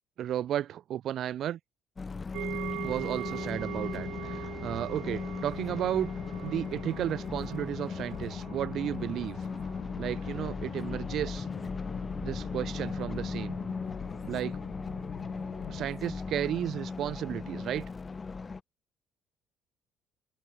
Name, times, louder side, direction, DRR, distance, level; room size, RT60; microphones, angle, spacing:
voice 1, 0.2-1.6 2.8-6.1 6.4-9.4 10.0-11.5 12.2-13.6 14.2-14.6 15.7-17.9, right 11 dB, 60° right, 1.9 m, -33 dB
sound 1, 2.0-18.6, left 4 dB, 25° left, 0.8 m, -38 dB
sound 2, 2.3-15.8, left 14 dB, 70° left, 5.8 m, -44 dB
sound 3, 2.3-11.4 11.7-12.0 12.4-12.5, right 17 dB, 80° right, 8.0 m, -43 dB
open air
cardioid pair, 115°, 0 cm